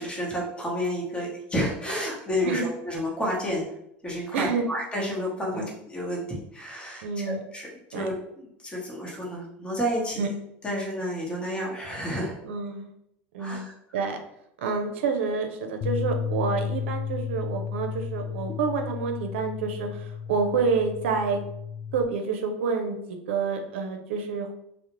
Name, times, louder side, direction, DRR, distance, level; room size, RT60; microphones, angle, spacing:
voice 1, 0.0-3.7 4.0-10.2 10.6-12.4 13.4-13.7, equal, 15° left, -3 dB, 0.9 m, -30 dB
voice 2, 7.0-7.4 7.9-8.1 10.2-10.3 12.4-12.9 13.3-13.6 13.9-14.2 14.6-21.4 21.9-24.5, right 5 dB, 85° right, 5 dB, 0.4 m, -28 dB
sound 1, 15.8-22.1, left 7 dB, 50° left, 0.4 m, -33 dB
2.4 x 2.0 x 3.0 m, 0.77 s
supercardioid pair, 105°, 6 cm